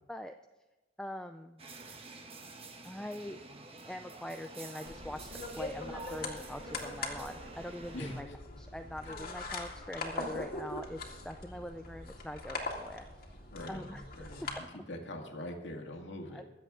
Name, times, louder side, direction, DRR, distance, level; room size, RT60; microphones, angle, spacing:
voice 1, 1.0-1.6 2.8-3.4 3.8-8.3 8.6-13.0 13.7-14.7 16.3-16.4, left 1 dB, 5° left, 6 dB, 0.3 m, -43 dB
sound 1, 1.6-8.2, right 3 dB, 35° right, 1.1 m, -49 dB
sound 2, 4.8-14.5, left 3 dB, 55° left, 2.1 m, -42 dB
voice 2, 13.5-16.4, left 1 dB, 80° left, 2 dB, 2.0 m, -43 dB
23.0 x 7.8 x 3.7 m, 1.1 s
head